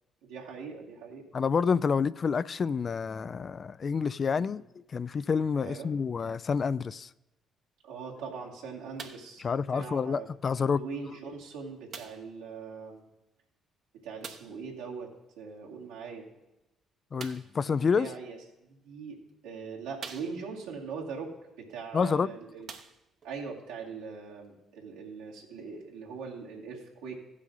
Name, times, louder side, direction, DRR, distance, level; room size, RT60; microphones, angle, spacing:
voice 1, 0.2-1.2 4.3-4.5 5.6-5.9 7.8-10.3 10.8-13.1 14.0-15.1 15.4-16.3 18.0-19.2 19.4-22.7 23.2-27.2, right 5 dB, 85° right, 2.3 m, -41 dB
voice 2, 1.3-4.6 4.9-7.1 9.4-10.8 17.1-18.1 21.9-22.3, left 5 dB, 45° left, 0.3 m, -28 dB
sound 1, 9.0-9.4 10.3-10.4 11.9-12.3 14.2-14.6 17.2-17.6 18.6-18.7 19.3-19.4 20.0-20.7 22.0-22.1 22.6-23.3 24.1-24.2, right 6 dB, 60° right, 0.9 m, -45 dB
16.0 x 6.4 x 3.9 m
hypercardioid pair, 50°, 0 cm